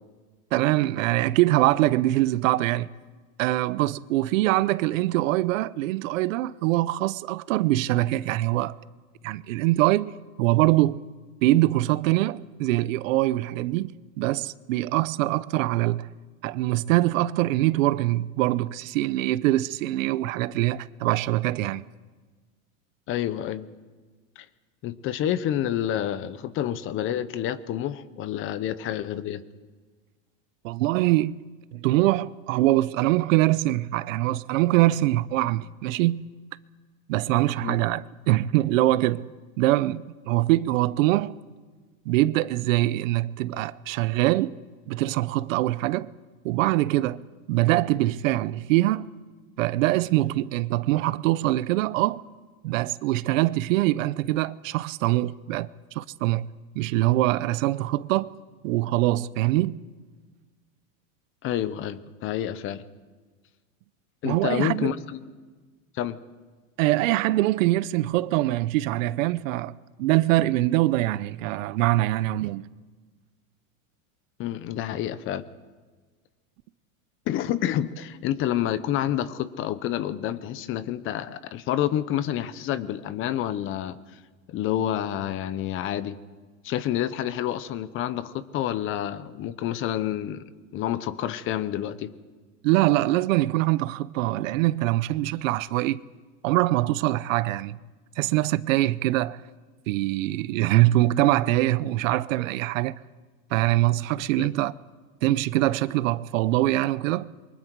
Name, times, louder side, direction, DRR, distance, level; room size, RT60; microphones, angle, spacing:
voice 1, 0.5-2.9 3.4-8.7 9.2-10.1 10.4-11.0 11.4-16.1 16.4-21.8 30.6-31.4 31.7-36.3 37.1-39.3 39.6-41.3 42.1-44.6 44.9-46.1 46.4-47.2 47.5-49.1 49.6-52.2 52.6-55.7 55.9-56.5 56.8-58.3 58.6-59.8 64.2-64.9 66.8-69.7 70.0-72.6 92.6-96.0 96.4-97.8 98.2-99.4 99.9-102.9 103.5-104.7 105.2-107.3, right 17 dB, 65° right, 0.7 m, -23 dB
voice 2, 23.1-23.7 24.4-24.5 24.8-29.4 37.6-37.8 61.4-62.8 64.2-65.2 65.9-66.2 74.4-75.4 77.3-84.2 84.5-86.2 86.6-90.4 90.7-92.1 104.4-104.5, left 11 dB, 30° left, 0.8 m, -28 dB
28.0 x 23.5 x 4.7 m
supercardioid pair, 150°, 42 cm